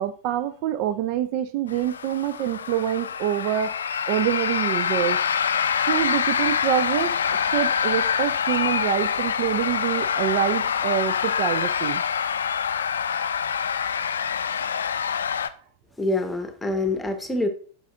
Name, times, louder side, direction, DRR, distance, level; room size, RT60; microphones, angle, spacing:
voice 1, 0.0-3.8 4.1-5.2 5.9-12.0, right 11 dB, 45° right, 12 dB, 0.4 m, -26 dB
sound 1, 1.7-15.5, left 7 dB, 65° left, 0.4 m, -25 dB
voice 2, 16.0-17.5, left 2 dB, 5° left, 7 dB, 1.1 m, -25 dB
8.2 x 6.5 x 2.4 m, 0.42 s
figure-of-eight pair, 90°, 0 cm